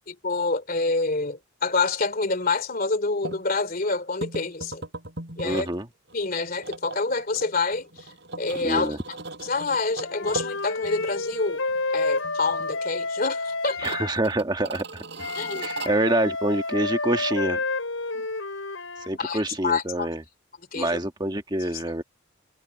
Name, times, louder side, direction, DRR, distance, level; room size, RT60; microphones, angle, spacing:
voice 1, 0.1-4.8 5.4-5.7 6.1-8.1 8.4-11.6 11.9-13.9 15.3-15.8 18.1-18.3 19.2-20.1 20.7-21.0, left 3 dB, 45° left, 2.8 m, -27 dB
sound 1, 3.2-3.4 4.2-5.8 6.1-11.4 11.7-11.8 12.2-12.8 13.0-13.1 13.7-15.9, right 2 dB, 60° right, 5.2 m, -38 dB
voice 2, 5.4-5.9 8.6-9.0 13.8-15.0 15.6-17.6 19.1-20.2 20.7-22.0, right 1 dB, 20° right, 1.5 m, -26 dB
Wind instrument woodwind instrument, 10.0-14.2 15.2-19.1, left 3 dB, 80° left, 6.2 m, -30 dB
head